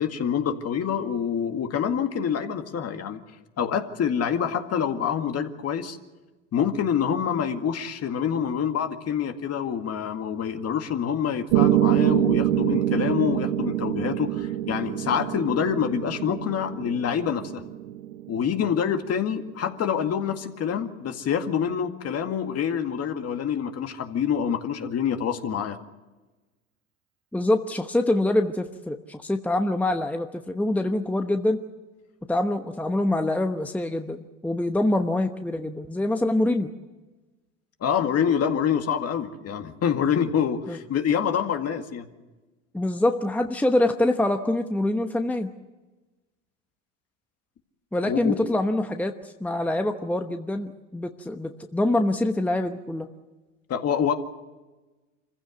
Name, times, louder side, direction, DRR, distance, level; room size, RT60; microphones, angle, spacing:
voice 1, 0.0-3.2 3.6-6.0 6.5-17.6 18.3-25.8 37.8-42.1 48.0-48.5 53.7-54.1, left 8 dB, 40° left, 6 dB, 2.1 m, -26 dB
Piano, 11.5-19.6, right 13 dB, 75° right, 1.0 m, -25 dB
voice 2, 27.3-31.6 32.3-36.7 40.7-40.8 42.7-45.5 47.9-49.1 49.4-53.1, left 1 dB, 5° left, 6 dB, 1.1 m, -25 dB
26.0 x 15.5 x 8.0 m, 1.2 s
hypercardioid pair, 85°, 37 cm